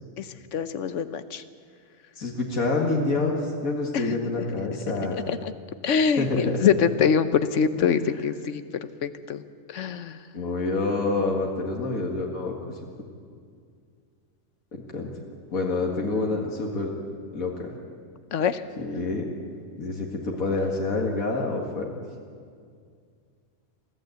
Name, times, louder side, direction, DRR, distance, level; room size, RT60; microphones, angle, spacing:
voice 1, 0.2-1.4 3.9-4.4 5.1-5.5 5.8-9.4 9.7-10.2 18.3-18.6, left 7 dB, 60° left, 12 dB, 1.1 m, -25 dB
voice 2, 2.2-5.2 6.2-6.6 7.8-7.9 10.3-12.8 14.7-15.1 15.5-16.9 17.3-17.7 18.8-19.3 19.8-21.9, left 3 dB, 80° left, 0 dB, 2.4 m, -27 dB
23.5 x 14.5 x 8.1 m, 2.2 s
omnidirectional pair, 1.5 m